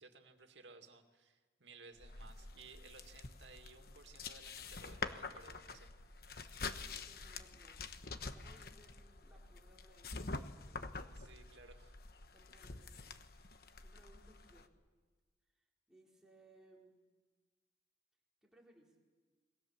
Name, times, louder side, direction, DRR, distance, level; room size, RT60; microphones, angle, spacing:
voice 1, 0.0-5.9 11.1-12.0, right 4 dB, 90° right, 5 dB, 2.2 m, -58 dB
sound 1, 2.0-14.7, left 3 dB, 55° left, 1.2 m, -47 dB
voice 2, 6.6-7.8 8.2-10.9 12.3-13.1 13.8-14.7 15.9-17.0 18.4-18.9, right 1 dB, 5° right, -3 dB, 4.4 m, -65 dB
27.5 x 22.0 x 7.3 m, 1.4 s
head